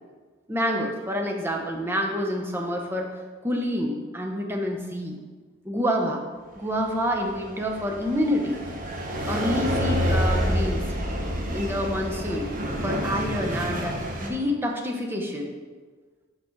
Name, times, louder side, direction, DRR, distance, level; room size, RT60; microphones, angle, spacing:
voice 1, 0.5-3.1 3.4-5.2 5.6-6.2 6.6-8.6 9.3-10.8 11.5-12.5 12.8-15.5, equal, 10° right, 1 dB, 0.7 m, -27 dB
sound 1, 6.7-14.3, equal, 40° right, 0.8 m, -28 dB
5.8 x 5.3 x 4.5 m, 1.4 s
head